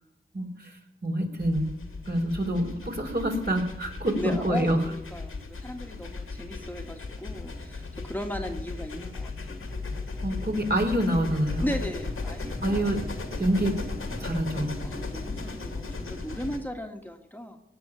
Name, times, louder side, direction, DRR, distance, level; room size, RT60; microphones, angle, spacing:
voice 1, 0.3-1.6 2.1-4.8 10.2-11.6 12.6-13.0 13.4-13.7 14.2-14.7, right 1 dB, 50° right, 1 dB, 4.0 m, -26 dB
sound 1, 1.4-16.6, left 3 dB, 80° left, 2.2 m, -36 dB
voice 2, 4.2-9.7 11.6-12.9 14.8-17.6, equal, 10° left, 3 dB, 1.7 m, -36 dB
18.0 x 7.1 x 9.8 m, 0.83 s
cardioid pair, 45°, 21 cm